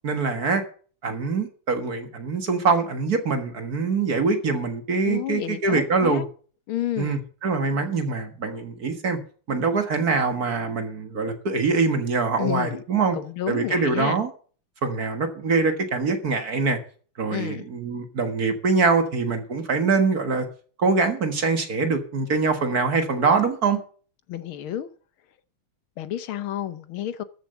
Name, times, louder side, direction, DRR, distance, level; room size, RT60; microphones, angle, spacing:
voice 1, 0.0-0.6 1.0-6.2 7.0-9.2 9.5-13.2 13.5-14.3 14.8-16.8 17.2-20.5 20.8-23.8, right 4 dB, 45° right, 7 dB, 1.9 m, -24 dB
voice 2, 5.0-6.3 6.7-7.3 12.4-12.8 13.1-14.2 17.3-17.7 24.3-24.9 26.0-27.2, left 12 dB, 75° left, 13 dB, 1.7 m, -30 dB
13.5 x 7.1 x 7.0 m, 0.42 s
omnidirectional pair, 2.4 m